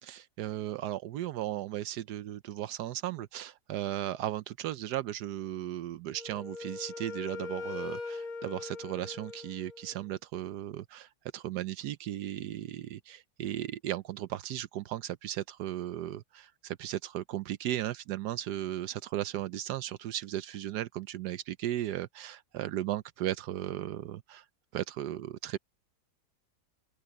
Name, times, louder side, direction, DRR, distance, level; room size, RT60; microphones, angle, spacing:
voice 1, 0.0-24.4 24.7-25.6, right 13 dB, 80° right, 1.2 m, -36 dB
Wind instrument woodwind instrument, 6.1-10.0, left 3 dB, 60° left, 5.6 m, -41 dB
open air
omnidirectional pair, 1.8 m